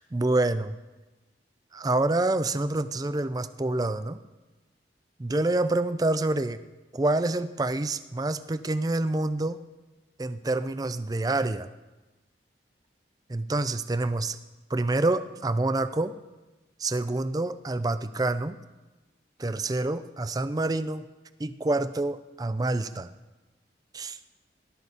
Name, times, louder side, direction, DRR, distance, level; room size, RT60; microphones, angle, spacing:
voice 1, 0.1-0.8 1.7-4.2 5.2-6.6 6.9-9.6 10.2-11.7 13.3-14.4 14.7-16.1 16.8-18.6 19.4-21.1 21.4-23.1 23.9-24.2, right 2 dB, 20° right, 13 dB, 0.4 m, -27 dB
18.0 x 12.0 x 4.2 m, 1.2 s
head